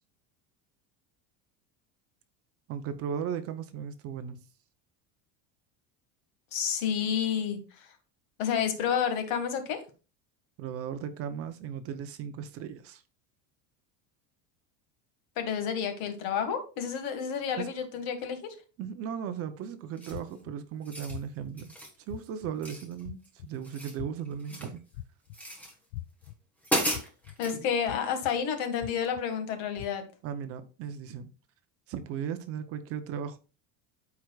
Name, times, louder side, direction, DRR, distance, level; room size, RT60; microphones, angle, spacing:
voice 1, 2.7-4.4 10.6-13.0 17.6-17.7 18.8-24.8 30.2-31.3 31.9-33.4, right 8 dB, 35° right, 0.6 m, -37 dB
voice 2, 6.5-7.9 8.4-9.8 15.4-18.4 27.4-30.0, left 7 dB, 60° left, 1.8 m, -30 dB
sound 1, 20.0-20.3 20.7-21.2 21.6-22.0 22.6-23.3 23.5-24.8 25.3-25.7 26.2-26.3 26.6-27.6, equal, 5° left, 1.3 m, -34 dB
sound 2, 20.1-20.5 21.1-21.5 22.1-22.5 23.0-23.5 24.0-24.4 24.9-25.4 25.9-26.3 26.9-27.3 27.9-28.3 28.8-29.2 29.8-29.9, left 14 dB, 85° left, 0.5 m, -41 dB
13.5 x 4.6 x 2.3 m
cardioid pair, 170°, 40 cm